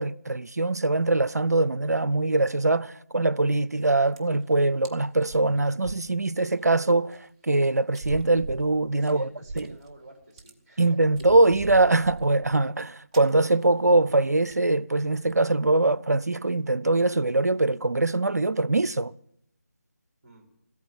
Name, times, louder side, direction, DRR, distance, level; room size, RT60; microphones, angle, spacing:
voice 1, 0.0-9.3 9.6-9.8 10.8-19.1, right 2 dB, 85° right, 0.5 m, -23 dB
sound 1, 3.8-3.9 4.1-4.4 4.8-4.9 5.2-6.7 7.1-7.2 7.9-10.0 10.2-10.5 11.0-12.8 13.1-13.3 13.6-13.8 14.1-14.2 14.5-14.7 15.2-15.4, right 3 dB, 20° right, 0.8 m, -40 dB
voice 2, 9.0-10.9 20.2-20.5, right 1 dB, 35° right, 3.2 m, -49 dB
14.5 x 8.5 x 9.6 m
figure-of-eight pair, 160°, 9 cm